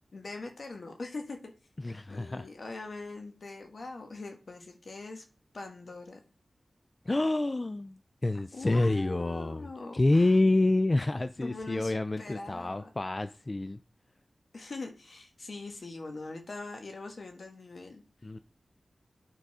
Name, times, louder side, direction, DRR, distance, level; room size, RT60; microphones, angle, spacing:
voice 1, 0.1-1.5 2.1-5.2 5.5-6.2 8.5-10.3 11.4-12.9 14.5-18.0, left 3 dB, 70° left, 1.5 m, -42 dB
voice 2, 1.8-2.5 7.1-9.7 9.9-13.8 18.2-18.4, left 2 dB, 40° left, 0.4 m, -27 dB
9.1 x 3.9 x 4.9 m
cardioid pair, 40°, 0 cm